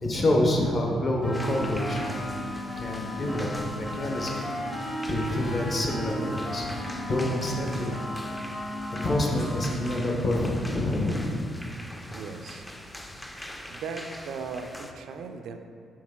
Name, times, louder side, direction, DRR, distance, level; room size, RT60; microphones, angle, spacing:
voice 1, 0.0-2.1 2.8-3.5 3.7-4.4 5.1-6.7 7.1-8.0 8.9-11.4, left 1 dB, 45° left, 0 dB, 1.0 m, -27 dB
sound 1, 1.2-10.1, equal, 25° left, 0.9 m, -35 dB
sound 2, 1.3-14.9, left 1 dB, 10° left, 0.4 m, -43 dB
voice 2, 12.1-12.7 13.7-15.6, right 5 dB, 75° right, 6 dB, 0.3 m, -38 dB
6.1 x 4.2 x 3.7 m, 2.3 s
cardioid pair, 90°, 0 cm